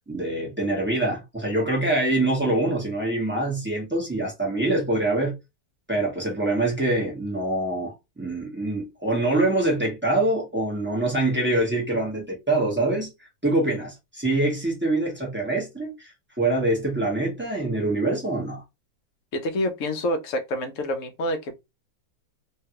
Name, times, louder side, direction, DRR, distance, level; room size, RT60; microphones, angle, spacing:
voice 1, 0.1-5.3 5.9-13.1 13.4-16.1 16.4-18.6, right 2 dB, 10° right, 0.6 m, -25 dB
voice 2, 19.3-21.6, left 1 dB, 65° left, 0.8 m, -27 dB
3.4 x 2.3 x 2.8 m
omnidirectional pair, 2.1 m